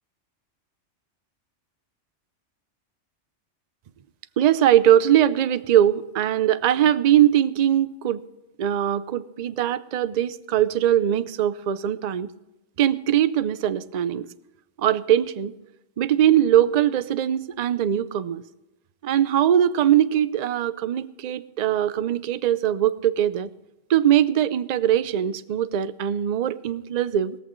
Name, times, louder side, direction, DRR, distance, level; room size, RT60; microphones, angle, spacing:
voice 1, 4.4-8.2 8.6-12.3 12.8-14.3 14.8-15.5 16.0-18.4 19.0-23.5 23.9-27.4, right 11 dB, 55° right, 14 dB, 0.5 m, -21 dB
17.0 x 14.5 x 3.1 m, 0.99 s
omnidirectional pair, 1.3 m